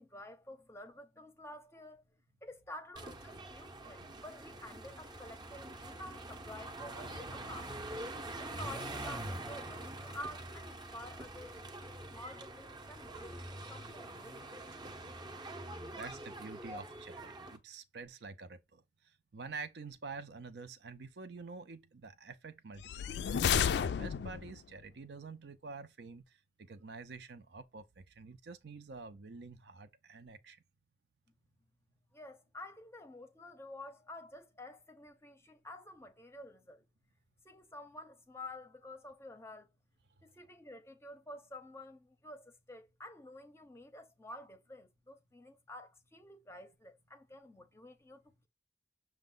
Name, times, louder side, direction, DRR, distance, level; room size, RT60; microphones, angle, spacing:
voice 1, 0.0-2.0 2.4-7.9 8.4-14.6 32.1-36.9 37.4-39.7 40.2-48.5, left 1 dB, 15° left, 0.6 m, -50 dB
sound 1, 3.0-17.6, right 1 dB, 25° right, 0.6 m, -45 dB
voice 2, 16.0-23.4 23.8-30.6, right 4 dB, 65° right, 0.5 m, -48 dB
sound 2, 22.8-24.6, left 8 dB, 65° left, 0.3 m, -31 dB
6.3 x 2.1 x 3.7 m
head